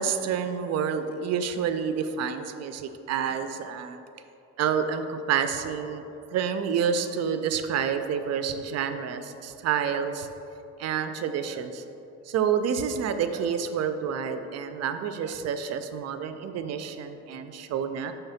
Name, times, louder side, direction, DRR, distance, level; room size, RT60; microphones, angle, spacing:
voice 1, 0.0-4.0 4.6-6.0 6.3-10.3 10.8-11.8 12.3-18.1, right 7 dB, 60° right, 9 dB, 0.4 m, -28 dB
5.7 x 3.4 x 5.6 m, 2.8 s
cardioid pair, 130°, 29 cm